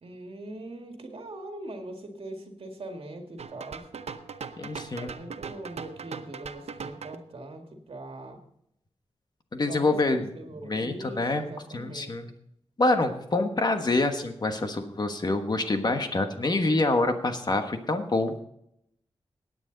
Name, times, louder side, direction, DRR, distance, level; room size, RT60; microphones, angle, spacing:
voice 1, 0.0-3.9 4.9-8.4 9.7-12.2, right 1 dB, 60° right, 3 dB, 2.0 m, -41 dB
sound 1, 3.4-7.2, right 6 dB, 75° right, 0.7 m, -40 dB
voice 2, 4.6-5.1 9.5-10.3 10.6-11.4 11.7-12.3 12.8-18.4, left 2 dB, 40° left, 6 dB, 1.3 m, -26 dB
17.0 x 9.2 x 4.0 m, 0.76 s
wide cardioid pair, 125°, 11 cm